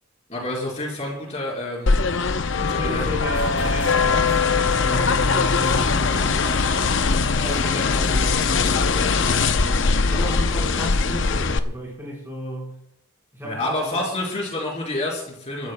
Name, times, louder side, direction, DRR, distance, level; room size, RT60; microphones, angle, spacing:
voice 1, 0.3-1.9 2.7-3.1 13.4-15.7, left 1 dB, 30° left, -3 dB, 4.0 m, -28 dB
sound 1, 1.9-11.6, left 4 dB, 60° left, 0.6 m, -21 dB
voice 2, 2.6-6.7 7.4-12.8 13.3-14.0, right 1 dB, 10° right, -2 dB, 4.3 m, -33 dB
sound 2, 3.0-8.7, left 2 dB, 85° left, 3.9 m, -38 dB
29.0 x 13.5 x 2.2 m, 0.77 s
head